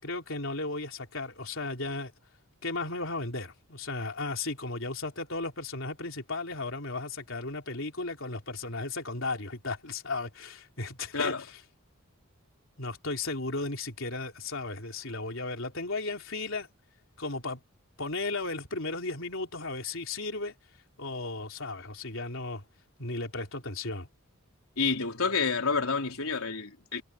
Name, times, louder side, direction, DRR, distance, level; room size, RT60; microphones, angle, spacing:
voice 1, 0.0-2.1 2.6-11.6 12.8-16.7 17.2-17.6 18.0-20.5 21.0-22.6 23.0-24.1, left 3 dB, 65° left, 4.1 m, -35 dB
voice 2, 24.8-27.0, left 4 dB, 80° left, 3.8 m, -29 dB
head